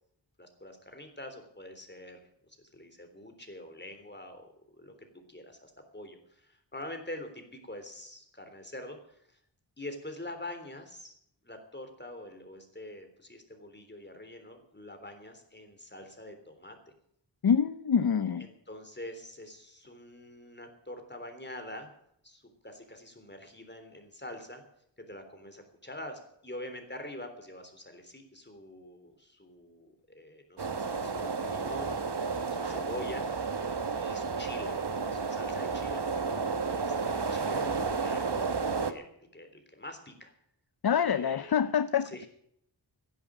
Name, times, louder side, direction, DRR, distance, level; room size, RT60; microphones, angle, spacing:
voice 1, 0.4-9.4 9.8-11.1 11.4-16.9 18.4-21.9 22.2-24.6 25.0-33.3 34.0-36.1 36.7-40.3 41.0-41.6 42.0-42.3, left 1 dB, 25° left, 6 dB, 3.5 m, -45 dB
voice 2, 17.4-18.5 40.8-42.1, left 7 dB, 55° left, 13 dB, 0.7 m, -26 dB
sound 1, 30.6-38.9, right 4 dB, 65° right, 1.3 m, -32 dB
15.5 x 11.0 x 7.6 m, 0.72 s
wide cardioid pair, 60°, 44 cm